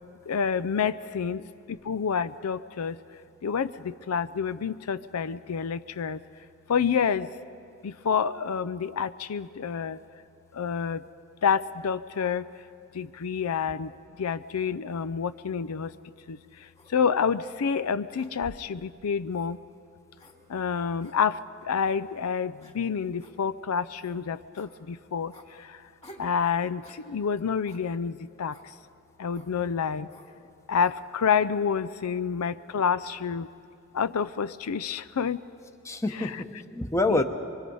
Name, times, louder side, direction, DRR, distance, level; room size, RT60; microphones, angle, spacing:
voice 1, 0.3-3.0 3.4-6.2 6.7-7.3 7.8-10.0 10.5-11.0 11.4-12.5 12.9-13.9 14.2-15.9 16.3-16.4 16.9-19.6 20.5-25.8 26.2-28.6 29.2-30.1 30.7-33.5 33.9-35.4 37.1-37.2, left 6 dB, 75° left, 14 dB, 0.5 m, -28 dB
sound 1, 16.7-16.9 17.4-17.6 18.1-18.7 19.3-19.5 20.2-20.4 21.0-21.2 21.8-22.0 22.6-22.8 23.2-23.4 23.9-24.1 24.5-24.7 25.3-25.5 26.0-26.3 26.8-27.0 27.7-27.9 28.5-28.7 29.3-29.5 30.1-30.3 30.8-31.0, equal, 30° left, 3.0 m, -51 dB
voice 2, 35.8-37.2, left 2 dB, 15° left, 7 dB, 1.0 m, -28 dB
24.5 x 24.0 x 5.5 m, 2.7 s
head